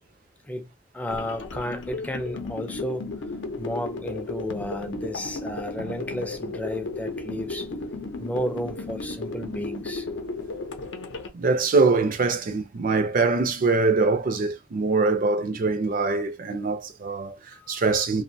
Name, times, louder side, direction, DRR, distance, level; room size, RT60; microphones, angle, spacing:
voice 1, 0.4-3.1 3.6-7.7 8.2-10.1 17.5-18.1, equal, 10° left, 0.4 m, -33 dB
sound 1, 1.1-11.3, left 3 dB, 80° left, 0.5 m, -34 dB
voice 2, 11.3-17.4 17.7-18.2, right 3 dB, 50° right, 0.5 m, -23 dB
2.5 x 2.1 x 2.6 m
head